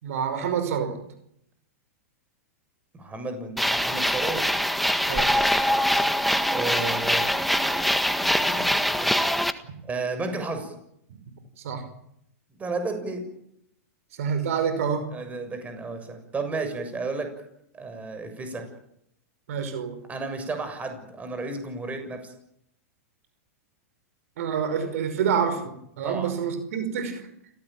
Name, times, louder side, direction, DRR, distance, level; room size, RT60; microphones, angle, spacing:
voice 1, 0.0-1.0 5.1-5.3 11.6-11.8 14.2-15.1 19.5-20.0 24.4-27.3, right 7 dB, 65° right, 9 dB, 5.4 m, -27 dB
voice 2, 2.9-4.4 6.5-7.7 8.0-9.3 9.8-10.7 12.5-13.2 15.1-17.3 17.7-18.7 20.1-22.3 26.0-26.3, right 3 dB, 15° right, 7 dB, 7.1 m, -33 dB
sound 1, 3.6-9.5, equal, ahead, 1.7 m, -23 dB
29.0 x 17.5 x 9.1 m, 0.76 s
hypercardioid pair, 115°, 8 cm